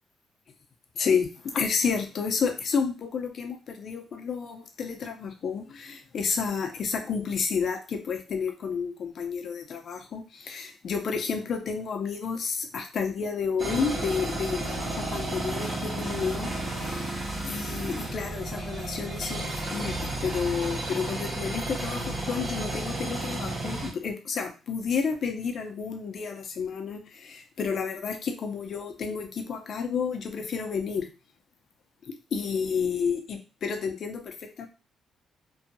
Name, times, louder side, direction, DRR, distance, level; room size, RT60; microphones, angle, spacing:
voice 1, 1.0-16.5 16.8-17.1 17.4-31.1 32.3-34.7, left 6 dB, 55° left, 5 dB, 0.6 m, -31 dB
sound 1, 13.6-23.9, right 2 dB, 45° right, 1.2 m, -32 dB
2.7 x 2.4 x 2.7 m, 0.31 s
cardioid pair, 90°, 0 cm